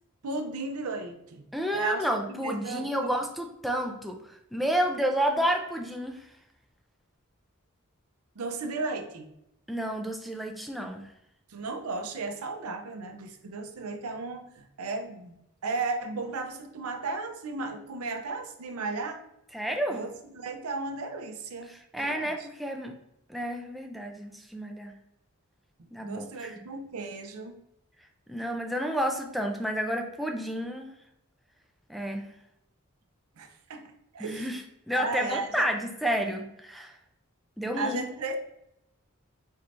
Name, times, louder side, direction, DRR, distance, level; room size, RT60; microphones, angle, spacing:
voice 1, 0.2-1.4 1.7-3.2 8.4-9.3 11.5-15.3 15.6-19.2 19.9-21.7 22.0-22.5 25.8-27.6 33.4-34.5 34.9-35.6 37.8-38.4, right 3 dB, 90° right, 6 dB, 0.6 m, -35 dB
voice 2, 1.5-6.3 9.7-11.1 19.5-20.0 21.7-22.9 23.3-24.9 25.9-26.6 28.3-30.9 31.9-32.3 34.2-34.6 34.9-37.0 37.6-38.0, equal, ahead, 2 dB, 0.4 m, -30 dB
4.4 x 3.3 x 2.5 m, 0.82 s
head